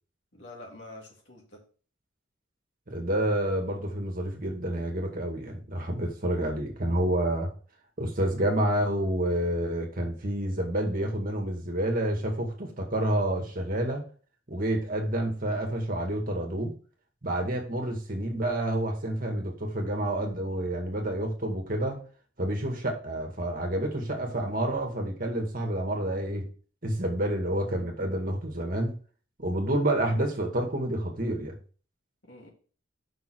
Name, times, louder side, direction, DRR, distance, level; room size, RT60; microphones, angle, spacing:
voice 1, 0.3-1.6 32.2-32.5, left 2 dB, 65° left, -1 dB, 2.9 m, -46 dB
voice 2, 2.9-7.5 8.0-14.1 14.5-16.7 17.2-22.0 22.4-26.5 26.8-28.9 29.4-31.5, right 1 dB, 45° right, 2 dB, 2.0 m, -29 dB
5.8 x 5.4 x 6.3 m, 0.39 s
head